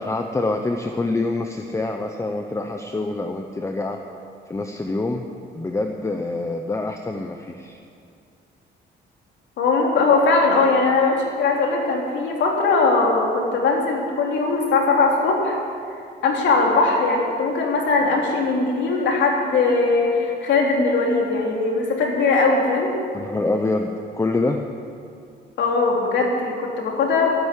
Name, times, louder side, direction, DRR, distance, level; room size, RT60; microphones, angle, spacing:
voice 1, 0.0-4.0 4.5-5.2 5.5-7.8 23.1-24.6, left 2 dB, 15° left, 5 dB, 0.9 m, -26 dB
voice 2, 9.6-15.6 16.2-22.9 25.6-27.3, left 3 dB, 75° left, 0 dB, 3.2 m, -20 dB
13.5 x 12.0 x 8.4 m, 2.4 s
cardioid pair, 110°, 19 cm